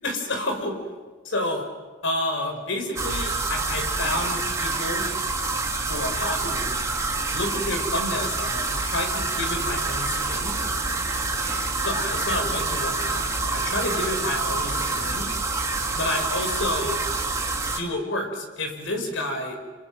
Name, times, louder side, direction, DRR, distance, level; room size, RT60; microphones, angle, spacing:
voice 1, 0.0-0.8 1.2-1.7 2.0-5.1 5.9-6.8 7.3-10.6 11.8-15.3 16.0-17.0 17.7-19.6, left 1 dB, 70° left, 4 dB, 5.6 m, -29 dB
sound 1, 3.0-17.8, right 3 dB, 15° right, 1.9 m, -27 dB
sound 2, 10.2-17.9, right 1 dB, 35° right, 4.0 m, -45 dB
29.5 x 26.0 x 6.4 m, 1.3 s
head